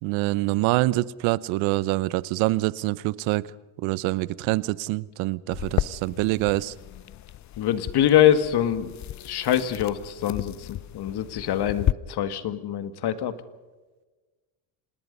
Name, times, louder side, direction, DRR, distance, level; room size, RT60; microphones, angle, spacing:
voice 1, 0.0-3.5 3.8-6.7, right 19 dB, 80° right, 20 dB, 0.9 m, -25 dB
sound 1, 5.5-11.9, left 13 dB, 40° left, 0.6 m, -33 dB
voice 2, 7.6-8.9 9.2-13.4, left 11 dB, 55° left, 11 dB, 2.0 m, -24 dB
26.5 x 19.5 x 5.4 m, 1.2 s
supercardioid pair, 100°, 47 cm